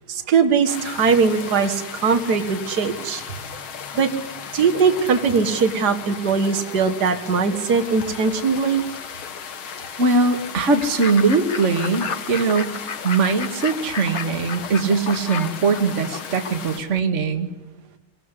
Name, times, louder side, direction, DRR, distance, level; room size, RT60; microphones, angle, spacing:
voice 1, 0.1-3.2 3.9-4.1 4.5-8.8, right 5 dB, 55° right, 7 dB, 2.1 m, -20 dB
sound 1, 0.7-16.8, left 7 dB, 80° left, 2.3 m, -36 dB
voice 2, 10.0-12.7 13.0-17.5, right 4 dB, 35° right, 5 dB, 2.0 m, -21 dB
Fowl / Bird, 10.8-17.0, left 6 dB, 40° left, 1.2 m, -34 dB
24.0 x 18.5 x 9.9 m, 0.97 s
omnidirectional pair, 2.2 m